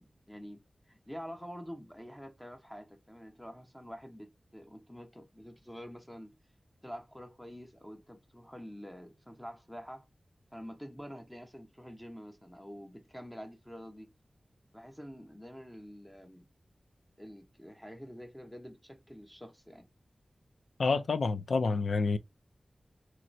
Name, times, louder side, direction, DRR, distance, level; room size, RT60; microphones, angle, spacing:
voice 1, 0.0-6.3 6.8-10.1 10.5-14.1 14.7-16.5 17.2-19.9, equal, 10° left, 1.0 m, -47 dB
voice 2, 20.8-22.2, left 4 dB, 85° left, 0.4 m, -28 dB
3.1 x 3.0 x 2.6 m
cardioid pair, 50°, 0 cm